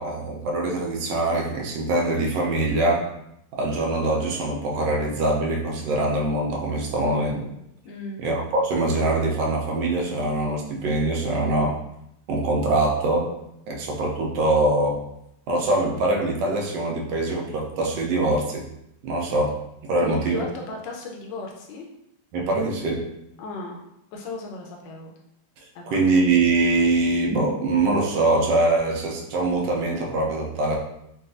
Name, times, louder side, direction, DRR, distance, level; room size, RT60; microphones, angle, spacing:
voice 1, 0.0-3.1 3.5-7.5 8.2-11.7 12.3-13.3 13.7-15.0 15.5-18.7 19.0-19.5 19.8-20.5 22.3-23.0 25.9-30.8, right 2 dB, 85° right, -1 dB, 1.3 m, -23 dB
voice 2, 7.8-8.2 20.0-21.9 23.4-25.2 25.7-26.0, left 3 dB, 80° left, 0 dB, 1.3 m, -36 dB
4.0 x 2.2 x 2.5 m, 0.80 s
omnidirectional pair, 2.0 m